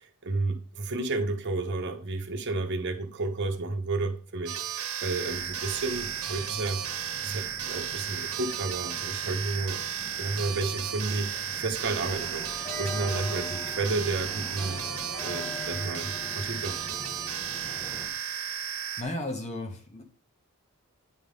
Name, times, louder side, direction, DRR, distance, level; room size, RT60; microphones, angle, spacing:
voice 1, 0.0-9.8 10.2-14.8 15.2-16.8, right 3 dB, 55° right, 5 dB, 1.0 m, -32 dB
sound 1, 4.5-19.0, right 9 dB, 75° right, 1.0 m, -34 dB
sound 2, 5.3-18.1, left 1 dB, 10° left, 1.0 m, -43 dB
voice 2, 18.1-18.6 19.0-20.0, left 1 dB, 30° left, 3 dB, 1.3 m, -36 dB
9.2 x 3.8 x 5.1 m, 0.40 s
head